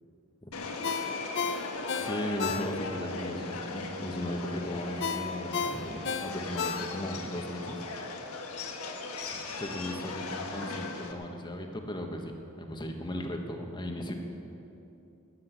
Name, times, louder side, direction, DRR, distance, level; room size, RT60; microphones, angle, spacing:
Subway metro underground, 0.5-11.1, left 3 dB, 75° left, 1.4 m, -38 dB
Ringtone, 0.8-3.1 3.5-3.6 5.0-7.3 7.6-7.7, left 6 dB, 55° left, 0.7 m, -33 dB
voice 1, 2.0-7.8 9.3-14.1, left 1 dB, 20° left, 3 dB, 1.3 m, -37 dB
13.5 x 10.0 x 8.2 m, 2.8 s
head